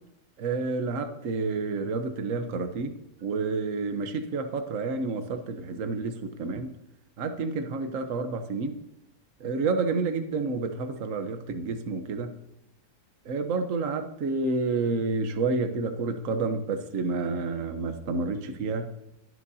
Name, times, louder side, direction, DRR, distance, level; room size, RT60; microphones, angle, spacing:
voice 1, 0.4-2.9 3.2-6.7 7.2-8.7 9.4-12.3 13.2-18.9, right 3 dB, 50° right, 7 dB, 1.2 m, -29 dB
26.5 x 9.4 x 2.8 m, 0.91 s
omnidirectional pair, 2.0 m